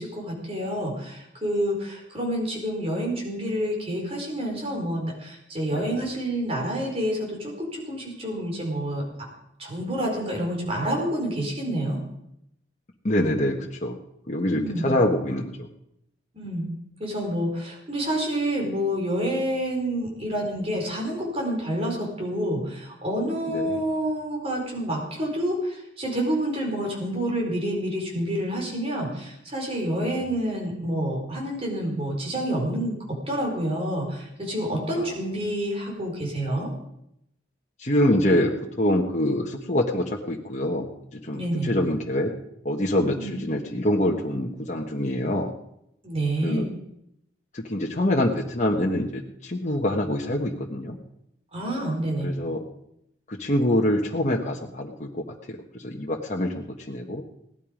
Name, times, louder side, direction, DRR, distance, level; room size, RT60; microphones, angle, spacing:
voice 1, 0.0-9.0 9.6-12.0 14.6-14.9 16.3-16.7 17.0-33.0 33.3-36.7 41.3-41.7 43.1-43.4 46.0-46.6 51.5-52.3, right 1 dB, 35° right, 0 dB, 4.5 m, -28 dB
voice 2, 13.0-14.0 14.3-15.7 23.5-23.8 30.1-30.2 35.0-35.1 37.8-42.3 42.6-45.5 46.4-46.7 47.5-51.0 52.2-52.6 53.3-57.2, left 1 dB, 40° left, 0 dB, 1.4 m, -25 dB
17.5 x 12.0 x 5.2 m, 0.79 s
head